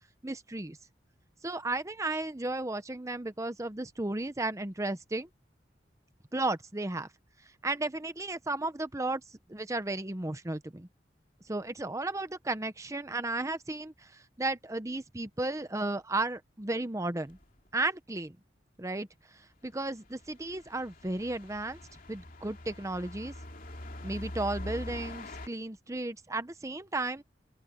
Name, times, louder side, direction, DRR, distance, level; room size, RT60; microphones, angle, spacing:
voice 1, 0.2-0.8 1.4-5.3 6.3-7.1 7.6-9.2 9.5-10.9 11.5-17.4 17.7-18.4 18.8-19.1 19.6-21.8 22.1-23.3 24.0-27.2, right 2 dB, 20° right, 0.9 m, -34 dB
sound 1, 17.3-17.4 20.0-25.5, left 1 dB, 55° left, 2.9 m, -43 dB
open air
head